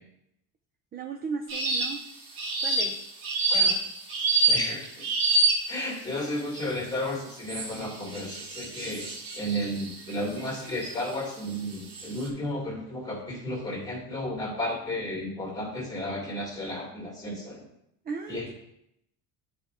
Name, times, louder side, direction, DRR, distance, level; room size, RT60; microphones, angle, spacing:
voice 1, 0.9-2.0 2.6-3.0 18.1-18.5, right 5 dB, 25° right, 5 dB, 0.3 m, -36 dB
sound 1, 1.5-2.0 2.4-5.9 6.5-6.9 7.5-11.0 11.5-12.3, right 3 dB, 55° right, 1.6 m, -27 dB
voice 2, 4.5-5.1 5.7-17.7 18.3-18.5, left 1 dB, 10° left, -2 dB, 1.8 m, -33 dB
10.0 x 4.3 x 3.5 m, 0.79 s
cardioid pair, 150°, 43 cm